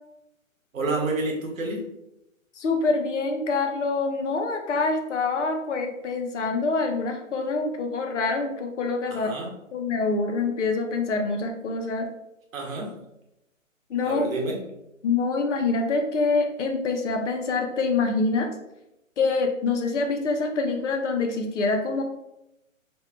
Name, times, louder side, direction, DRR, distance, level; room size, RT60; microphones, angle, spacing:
voice 1, 0.7-1.8 9.1-9.5 12.5-12.9 14.0-14.6, right 2 dB, 75° right, -1 dB, 0.9 m, -28 dB
voice 2, 2.6-9.3 9.7-12.1 13.9-14.3 15.0-18.5 19.2-22.0, left 3 dB, 60° left, 4 dB, 0.5 m, -25 dB
2.6 x 2.2 x 2.3 m, 0.87 s
figure-of-eight pair, 135°, 41 cm